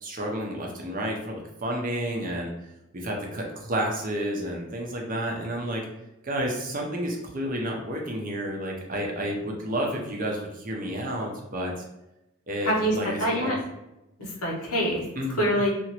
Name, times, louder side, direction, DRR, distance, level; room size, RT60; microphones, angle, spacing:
voice 1, 0.0-2.5 2.9-5.8 6.2-11.8 12.5-13.6 15.2-15.5, equal, 40° right, 0 dB, 0.6 m, -30 dB
voice 2, 12.6-13.6 14.2-15.0 15.4-15.7, equal, 90° left, -2 dB, 1.0 m, -25 dB
2.9 x 2.5 x 2.8 m, 0.93 s
head